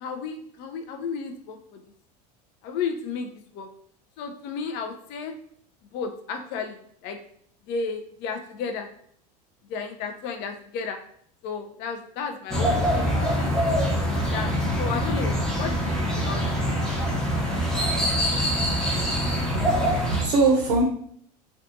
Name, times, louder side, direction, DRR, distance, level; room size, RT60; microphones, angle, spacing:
voice 1, 0.0-1.8 2.6-3.7 4.2-5.3 5.9-7.2 7.7-8.9 9.7-11.0 11.4-13.6 14.1-14.5 14.8-16.6, left 5 dB, 55° left, 5 dB, 0.4 m, -33 dB
sound 1, 12.5-20.2, equal, 5° left, 0.7 m, -24 dB
voice 2, 19.5-20.8, right 3 dB, 85° right, 0 dB, 0.5 m, -23 dB
2.5 x 2.3 x 2.6 m, 0.64 s
hypercardioid pair, 90°, 21 cm